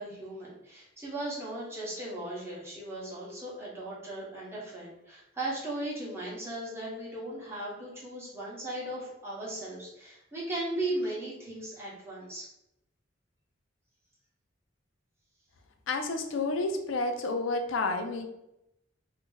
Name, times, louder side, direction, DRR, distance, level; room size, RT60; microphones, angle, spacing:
voice 1, 0.0-12.5, right 1 dB, 15° right, -6 dB, 1.0 m, -37 dB
voice 2, 15.9-18.3, left 3 dB, 80° left, 6 dB, 0.4 m, -30 dB
2.5 x 2.0 x 3.8 m, 0.83 s
head